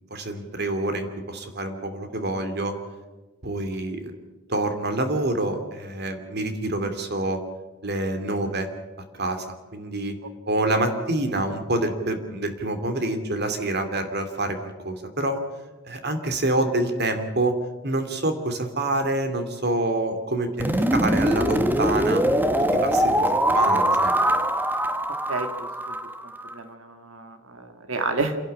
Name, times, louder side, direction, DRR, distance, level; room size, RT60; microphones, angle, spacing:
voice 1, 0.1-2.7 3.4-4.2 4.5-7.4 7.8-8.7 9.2-10.2 10.5-15.4 15.8-17.5 17.8-22.2 22.8-24.2, right 2 dB, 55° right, 7 dB, 2.5 m, -27 dB
sound 1, 20.6-26.5, right 1 dB, 10° right, 1.0 m, -22 dB
voice 2, 25.1-26.0 26.2-28.4, right 3 dB, 80° right, 8 dB, 1.8 m, -31 dB
28.0 x 11.5 x 8.7 m, 1.2 s
head